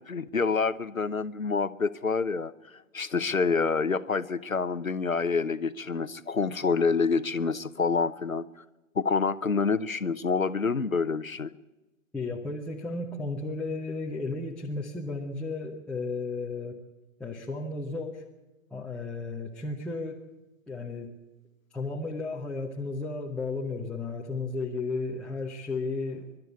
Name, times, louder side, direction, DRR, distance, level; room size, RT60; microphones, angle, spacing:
voice 1, 0.0-2.5 2.9-8.5 8.9-11.5, left 4 dB, 85° left, 15 dB, 0.9 m, -27 dB
voice 2, 12.1-16.8 17.2-18.2 18.7-20.2 20.7-21.2 21.7-26.3, left 3 dB, ahead, -5 dB, 0.9 m, -34 dB
26.0 x 12.0 x 8.3 m, 1.1 s
figure-of-eight pair, 125°, 40 cm